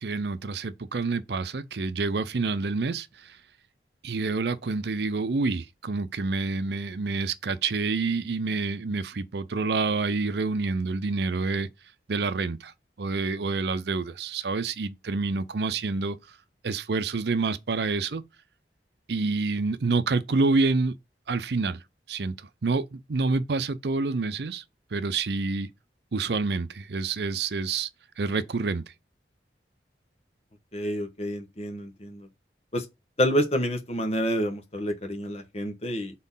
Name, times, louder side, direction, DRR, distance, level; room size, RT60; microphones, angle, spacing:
voice 1, 0.0-3.4 4.0-11.7 12.1-12.7 13.0-16.2 16.6-18.2 19.1-20.9 21.3-21.8 22.1-24.6 24.9-25.7 26.1-27.9 28.2-28.8, right 3 dB, 65° right, 0.6 m, -27 dB
voice 2, 30.7-32.3 32.7-32.8 33.2-36.1, equal, 35° left, 1.3 m, -28 dB
4.4 x 3.9 x 5.5 m
head